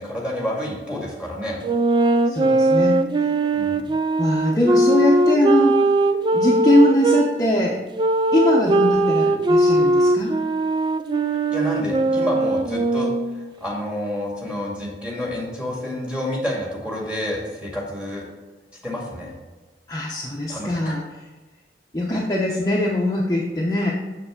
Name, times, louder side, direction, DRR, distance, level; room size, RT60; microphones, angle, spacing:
voice 1, 0.0-1.6 3.5-3.9 11.5-18.2 18.8-19.3 20.5-20.9, left 1 dB, 5° right, -3 dB, 2.1 m, -29 dB
sound 1, 1.6-7.3 8.0-13.5, right 2 dB, 25° right, 0.3 m, -20 dB
voice 2, 2.3-3.3 4.2-5.9 6.3-7.8 8.3-10.4 19.9-21.0 21.9-23.9, left 1 dB, 20° left, -4 dB, 0.8 m, -21 dB
6.9 x 6.7 x 3.8 m, 1.3 s
head